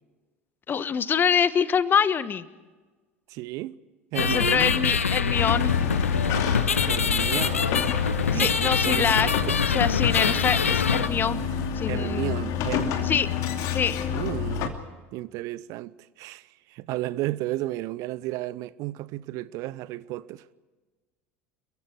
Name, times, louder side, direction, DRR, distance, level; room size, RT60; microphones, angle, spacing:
voice 1, 0.7-2.5 4.2-5.7 8.3-9.3 9.7-11.4 11.7-12.4 13.0-13.3 13.7-13.9, left 7 dB, 30° left, 1.3 m, -25 dB
voice 2, 3.3-3.8 4.1-4.8 6.9-7.7 8.3-9.6 11.9-13.2 14.1-14.8 15.1-20.4, right 17 dB, 50° right, 0.7 m, -33 dB
sound 1, 4.1-11.1, left 6 dB, 80° left, 1.0 m, -24 dB
sound 2, 5.3-14.7, left 8 dB, 50° left, 2.7 m, -29 dB
29.5 x 22.5 x 4.6 m
figure-of-eight pair, 75°, 7 cm